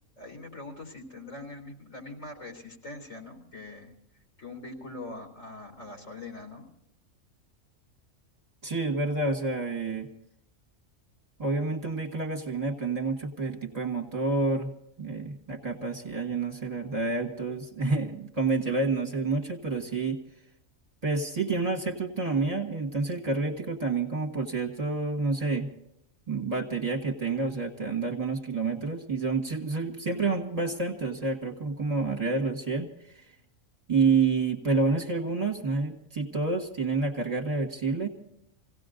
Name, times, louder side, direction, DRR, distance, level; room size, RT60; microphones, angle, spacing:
voice 1, 0.2-3.9 4.4-6.7, left 2 dB, 75° left, 1 dB, 4.0 m, -42 dB
voice 2, 8.6-10.1 11.4-14.7 15.0-20.2 21.0-25.7 26.3-32.9 33.1-33.2 33.9-38.1, right 3 dB, 30° right, 1 dB, 1.9 m, -28 dB
28.5 x 17.5 x 2.6 m, 0.79 s
omnidirectional pair, 1.4 m